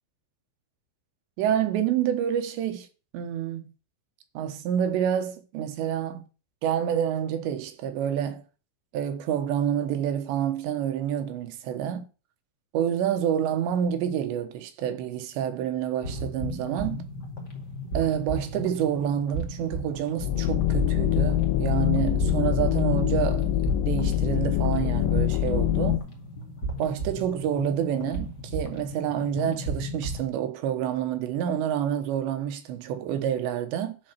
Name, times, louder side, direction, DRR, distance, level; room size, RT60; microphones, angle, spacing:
voice 1, 1.4-2.9 3.1-3.7 4.3-6.3 6.6-8.4 8.9-12.1 12.7-17.0 17.9-23.5 23.8-26.0 26.8-34.0, right 9 dB, 70° right, 3.2 m, -28 dB
sound 1, 16.0-30.3, right 1 dB, 45° left, 1.3 m, -35 dB
sound 2, 20.2-26.0, left 12 dB, 85° left, 3.2 m, -24 dB
12.0 x 5.1 x 5.9 m
omnidirectional pair, 5.7 m